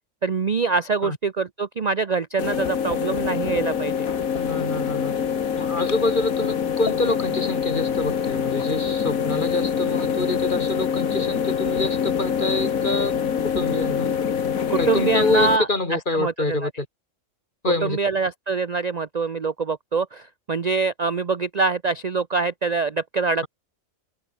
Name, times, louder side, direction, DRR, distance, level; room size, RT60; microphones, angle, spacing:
voice 1, 0.2-4.1 14.7-15.7 16.2-16.6 17.8-23.5, right 4 dB, 35° right, 0.7 m, -24 dB
sound 1, 2.4-15.6, left 7 dB, 80° left, 1.8 m, -25 dB
voice 2, 4.3-5.2 5.5-14.1 14.8-16.9 17.6-18.0, left 2 dB, 35° left, 3.1 m, -26 dB
omnidirectional pair, 1.4 m